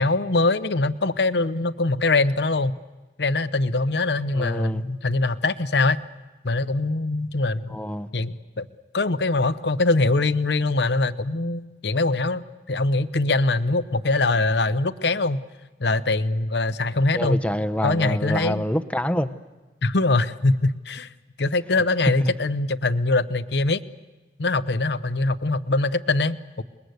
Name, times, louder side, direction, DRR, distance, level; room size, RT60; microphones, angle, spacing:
voice 1, 0.0-2.8 3.2-6.0 6.4-7.8 8.1-8.7 8.9-15.4 15.8-17.4 17.8-18.6 19.8-21.1 21.4-23.8 24.4-26.6, left 2 dB, 70° left, 13 dB, 0.9 m, -23 dB
voice 2, 4.3-4.8 7.7-8.1 17.1-19.3 22.2-22.3, equal, 5° left, 11 dB, 0.8 m, -26 dB
28.5 x 21.5 x 8.1 m, 1.2 s
head